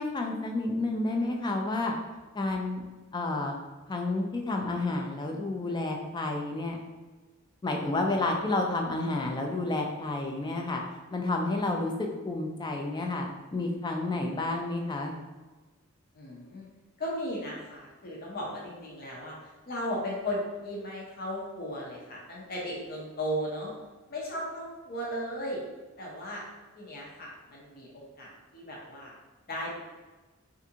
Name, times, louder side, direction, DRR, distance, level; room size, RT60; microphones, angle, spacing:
voice 1, 0.0-1.9 2.3-2.8 3.1-3.6 3.9-6.8 7.6-10.8 11.1-15.2, left 2 dB, 20° left, 2 dB, 0.3 m, -30 dB
voice 2, 16.1-16.7 17.0-23.7 24.1-25.6 26.0-26.4 26.8-29.2 29.5-29.8, equal, 45° left, -3 dB, 0.7 m, -36 dB
3.4 x 2.5 x 2.8 m, 1.2 s
head